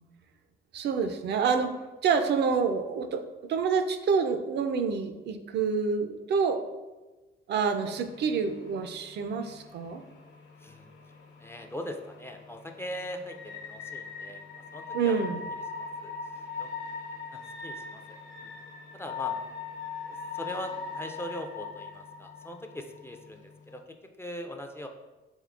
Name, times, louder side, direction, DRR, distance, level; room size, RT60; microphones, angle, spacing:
voice 1, 0.7-1.8 2.0-3.2 3.5-6.6 7.5-10.0 14.9-15.4, right 5 dB, 60° right, 8 dB, 0.4 m, -27 dB
sound 1, 7.9-23.8, left 5 dB, 70° left, 0.9 m, -41 dB
voice 2, 10.6-10.9 11.4-14.4 14.7-15.2 15.5-16.2 16.6-16.7 17.3-18.5 18.9-19.4 20.1-24.9, left 1 dB, 10° left, 4 dB, 0.3 m, -41 dB
3.8 x 3.5 x 2.4 m, 1.2 s
cardioid pair, 90°, 20 cm